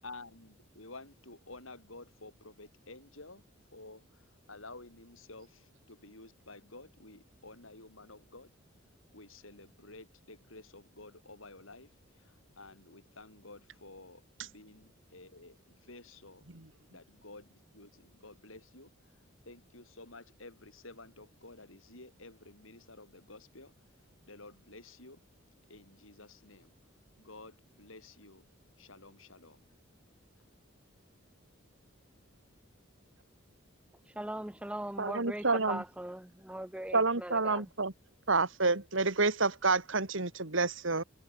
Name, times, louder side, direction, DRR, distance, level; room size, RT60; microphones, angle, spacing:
voice 1, 0.0-3.4 3.7-8.5 9.1-16.4 16.9-23.7 24.2-25.2 25.7-26.8 27.2-28.5 28.8-29.6, left 2 dB, 75° left, 7.4 m, -52 dB
voice 2, 34.1-37.7, right 1 dB, 5° right, 0.7 m, -40 dB
voice 3, 35.0-35.8 36.9-37.9 38.3-41.0, right 3 dB, 70° right, 2.4 m, -29 dB
head